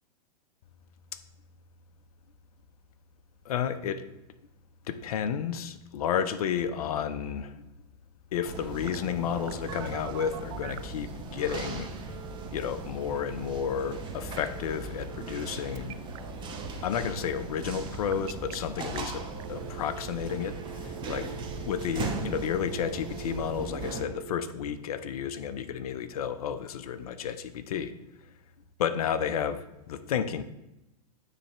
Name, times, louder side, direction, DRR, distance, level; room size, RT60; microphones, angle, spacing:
voice 1, 3.4-4.0 4.9-7.5 8.3-11.9 12.5-16.0 16.8-19.2 19.5-21.2 21.7-27.9 28.8-30.4, left 8 dB, 65° left, 11 dB, 0.6 m, -31 dB
sound 1, 8.4-24.0, right 3 dB, 25° right, 1.0 m, -38 dB
Telephone, 8.9-11.0 11.5-12.5 14.5-15.5 15.7-16.2 17.9-18.5 19.0-19.1 19.4-24.4, right 11 dB, 55° right, 0.4 m, -44 dB
9.1 x 3.3 x 4.3 m, 0.93 s
hypercardioid pair, 110°, 20 cm